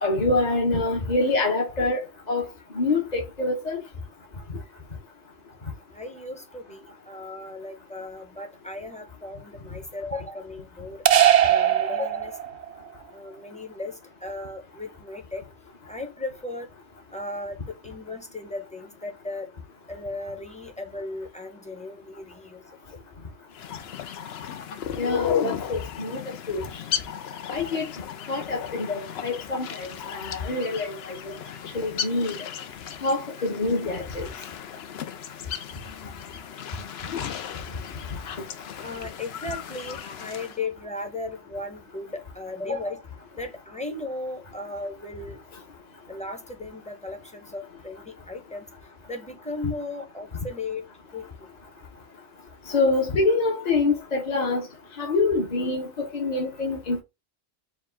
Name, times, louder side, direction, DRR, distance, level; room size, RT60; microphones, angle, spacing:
voice 1, 0.0-2.0 2.3-2.5 2.7-3.8 25.0-26.2 26.5-26.6 27.5-27.8 28.3-31.3 31.7-32.4 33.0-34.3 52.7-54.6 55.0-57.0, left 3 dB, 40° left, 1.0 m, -25 dB
voice 2, 5.9-11.0 11.4-12.4 13.1-15.4 15.9-16.7 17.1-19.5 19.9-22.6 22.9-23.0 38.8-43.1 43.4-45.4 46.1-48.7 49.1-50.8 51.1-51.5 54.3-54.4, left 2 dB, 10° left, 0.7 m, -36 dB
sound 1, 11.1-12.7, right 10 dB, 55° right, 0.5 m, -19 dB
sound 2, 23.5-40.6, left 9 dB, 75° left, 0.8 m, -35 dB
4.9 x 2.3 x 3.4 m
omnidirectional pair, 1.1 m